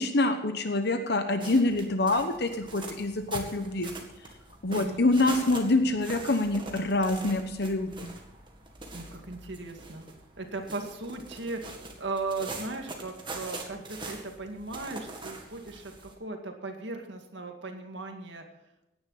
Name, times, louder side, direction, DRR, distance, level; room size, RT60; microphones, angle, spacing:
voice 1, 0.0-3.9 4.6-8.1, left 2 dB, 55° left, 7 dB, 1.0 m, -26 dB
sound 1, 1.4-16.1, right 3 dB, 25° right, 1.8 m, -43 dB
voice 2, 4.7-5.0 8.9-10.1 10.4-11.6 12.0-18.4, right 3 dB, 60° right, 4 dB, 2.2 m, -37 dB
17.5 x 10.0 x 4.2 m, 0.94 s
head